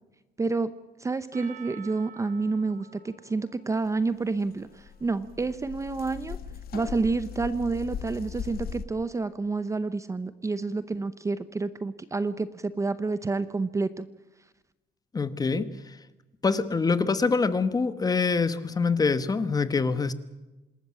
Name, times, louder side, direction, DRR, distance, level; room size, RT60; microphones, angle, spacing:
voice 1, 0.4-0.7 1.0-6.4 6.7-14.1, right 3 dB, 15° right, 13 dB, 0.7 m, -29 dB
Percussion, 1.3-5.8, right 8 dB, 50° right, 4.8 m, -51 dB
sound 1, 4.4-4.5 4.7-8.8, left 8 dB, 65° left, 1.4 m, -39 dB
voice 2, 15.1-16.0 16.4-20.1, left 4 dB, 20° left, 13 dB, 1.2 m, -25 dB
27.0 x 13.0 x 8.6 m, 1.1 s
cardioid pair, 165°, 17 cm